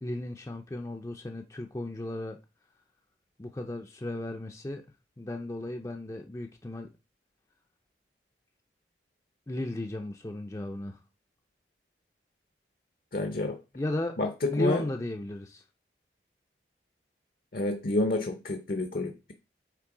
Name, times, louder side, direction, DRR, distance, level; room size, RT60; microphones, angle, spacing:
voice 1, 0.0-2.4 3.4-4.8 5.2-6.9 9.5-11.0 13.7-14.2 14.5-15.6, left 1 dB, 20° left, 0.5 m, -35 dB
voice 2, 13.1-13.6 14.2-14.8 17.5-19.3, left 2 dB, 55° left, 0.7 m, -29 dB
8.3 x 3.3 x 4.9 m
head